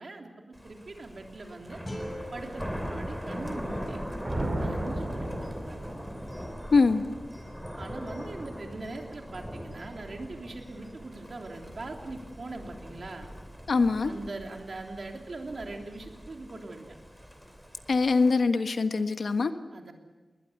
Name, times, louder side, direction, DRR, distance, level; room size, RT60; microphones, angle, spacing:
voice 1, 0.0-1.8 2.3-4.0 4.5-5.9 7.8-13.3 14.0-17.0 19.7-19.9, right 2 dB, 55° right, 2 dB, 3.2 m, -41 dB
Thunder, 0.5-18.3, equal, ahead, 3.0 m, -41 dB
sound 1, 1.8-4.9, equal, 20° left, 6.2 m, -44 dB
sound 2, 4.2-6.2, right 1 dB, 30° right, 6.0 m, -33 dB
voice 2, 6.7-7.0 13.7-14.1 17.9-19.5, left 4 dB, 75° left, 8 dB, 1.4 m, -23 dB
21.0 x 20.5 x 8.1 m, 1.3 s
wide cardioid pair, 105°, 0 cm